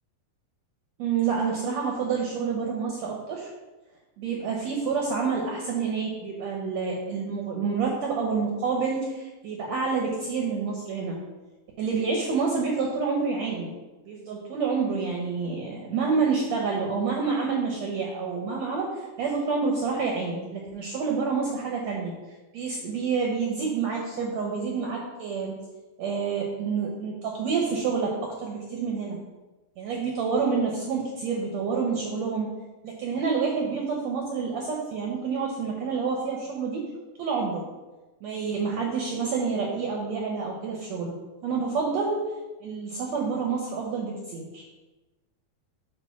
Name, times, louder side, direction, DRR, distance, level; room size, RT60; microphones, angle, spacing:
voice 1, 1.0-3.5 4.2-11.2 11.8-13.7 14.1-22.1 22.5-25.5 26.0-29.2 29.8-32.5 32.8-36.8 37.2-37.6 38.2-41.1 41.4-42.2 42.6-44.6, right 5 dB, 75° right, -1 dB, 1.6 m, -28 dB
8.8 x 3.6 x 5.8 m, 1.2 s
omnidirectional pair, 4.3 m